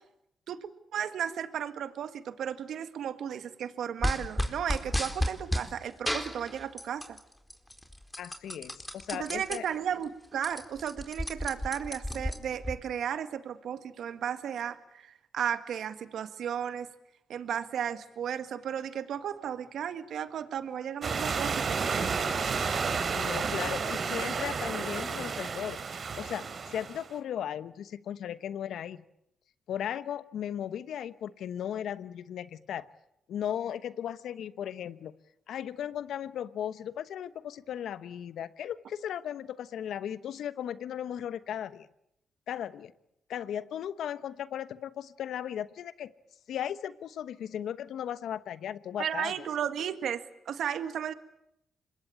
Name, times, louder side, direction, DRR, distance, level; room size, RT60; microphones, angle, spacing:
voice 1, 0.9-7.2 9.1-16.9 17.3-22.6 49.0-51.1, right 9 dB, 75° right, 10 dB, 1.7 m, -34 dB
sound 1, 4.0-5.7 6.1-7.2 7.5-9.6 10.0-10.1 10.3-12.7, equal, 10° left, 4.3 m, -32 dB
voice 2, 8.2-9.6 23.1-29.0 29.7-32.9 33.3-35.1 35.5-41.9 42.5-42.9 43.3-46.1 46.5-49.3, left 10 dB, 75° left, 15 dB, 1.0 m, -36 dB
sound 2, 21.0-27.1, right 5 dB, 55° right, 3.0 m, -31 dB
26.0 x 21.5 x 8.7 m, 0.80 s
supercardioid pair, 50°, 0 cm